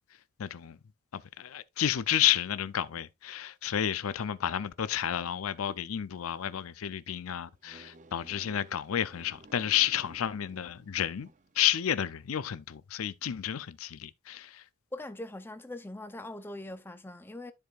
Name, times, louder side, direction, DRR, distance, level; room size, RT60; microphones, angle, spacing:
voice 1, 0.4-0.8 1.1-11.3 11.5-14.7, left 10 dB, 90° left, 0.5 m, -31 dB
sound 1, 7.6-11.7, right 2 dB, 35° right, 0.5 m, -54 dB
voice 2, 14.9-17.5, left 1 dB, 10° left, 0.5 m, -41 dB
12.5 x 4.7 x 2.4 m
head